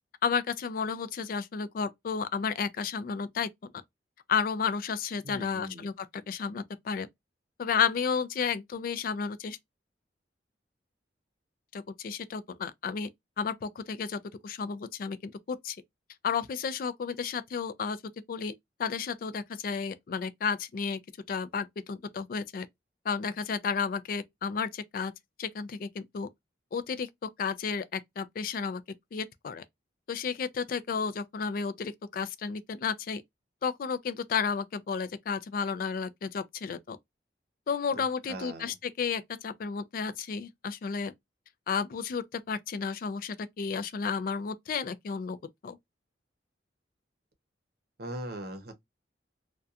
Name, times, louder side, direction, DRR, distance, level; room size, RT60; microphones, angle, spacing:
voice 1, 0.2-3.5 4.3-7.1 7.6-9.6 11.7-13.1 13.4-15.8 16.2-18.0 18.3-18.5 18.8-21.0 21.3-22.7 23.1-25.1 25.4-26.3 26.7-28.8 29.1-29.6 30.1-33.2 33.6-37.0 37.7-41.1 41.7-45.4 45.6-45.8, left 6 dB, 50° left, 0.3 m, -32 dB
voice 2, 5.2-5.9 37.9-38.7 48.0-48.7, right 1 dB, 55° right, 0.7 m, -40 dB
2.7 x 2.2 x 2.3 m
head